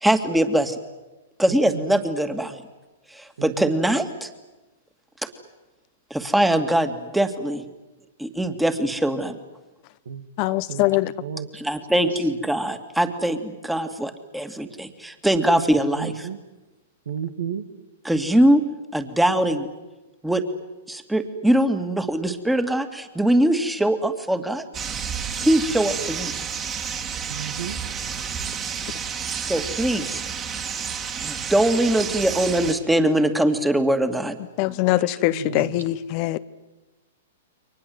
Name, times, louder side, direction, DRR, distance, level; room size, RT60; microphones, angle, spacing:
voice 1, 0.0-0.8 1.4-2.6 3.1-4.3 6.1-7.6 8.2-9.3 11.5-16.3 18.0-18.6 18.9-19.7 20.2-20.4 20.9-24.6 25.4-26.3 29.4-30.2 31.2-34.4, right 1 dB, 5° right, 2.2 m, -22 dB
voice 2, 10.4-11.1 34.6-36.4, left 17 dB, 45° left, 0.9 m, -22 dB
voice 3, 16.0-16.4 17.1-17.6 27.3-27.8 35.3-35.8, right 8 dB, 80° right, 2.1 m, -32 dB
sound 1, 24.7-32.7, right 7 dB, 25° right, 2.8 m, -30 dB
29.5 x 23.5 x 8.0 m
hypercardioid pair, 125°, 0 cm